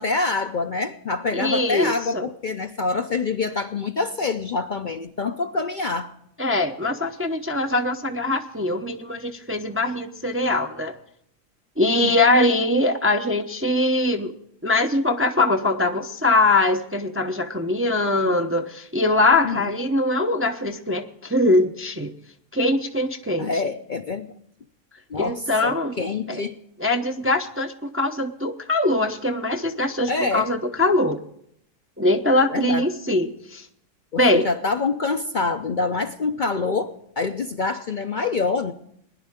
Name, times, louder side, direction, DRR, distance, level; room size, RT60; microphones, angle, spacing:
voice 1, 0.0-6.1 12.0-12.2 19.4-19.6 23.4-24.3 25.1-26.6 30.1-30.5 32.5-32.8 34.1-38.7, left 3 dB, 50° left, 6 dB, 0.6 m, -26 dB
voice 2, 1.3-2.3 6.4-11.0 11.8-14.3 14.6-22.1 22.5-23.5 25.2-25.9 26.3-26.4 26.8-31.2 32.0-33.7 34.2-34.5, left 2 dB, 15° right, 5 dB, 0.5 m, -22 dB
20.0 x 10.5 x 3.6 m, 0.71 s
omnidirectional pair, 1.4 m